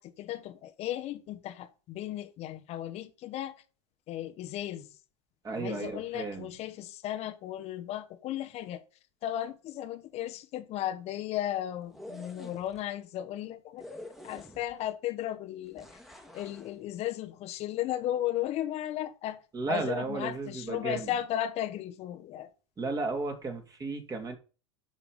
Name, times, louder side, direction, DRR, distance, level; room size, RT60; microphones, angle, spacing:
voice 1, 0.0-3.5 4.1-4.9 5.5-8.8 9.2-13.8 14.2-15.9 16.3-19.4 19.7-22.5, left 12 dB, 40° left, 1.3 m, -35 dB
voice 2, 5.4-6.5 19.5-21.1 22.8-24.4, right 3 dB, 25° right, 2.7 m, -34 dB
sound 1, 11.8-12.8 13.8-14.9 15.8-16.7, left 1 dB, ahead, 2.0 m, -47 dB
11.0 x 5.9 x 5.5 m
hypercardioid pair, 100°, 16 cm